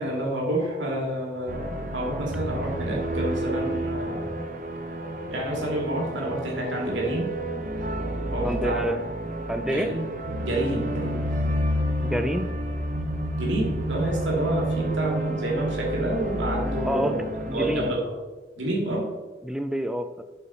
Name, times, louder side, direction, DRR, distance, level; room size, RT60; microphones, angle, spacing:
voice 1, 0.0-4.3 5.3-7.3 8.2-8.8 9.7-10.1 10.4-11.3 13.4-17.2 17.5-18.0 18.6-19.1, right 1 dB, 75° right, -2 dB, 2.3 m, -29 dB
sound 1, 1.5-17.9, right 1 dB, 45° right, 0.8 m, -30 dB
voice 2, 8.4-9.0 9.5-9.9 12.0-12.5 16.8-17.9 19.4-20.2, equal, 5° right, 9 dB, 0.3 m, -28 dB
8.1 x 5.7 x 4.4 m, 1.3 s
head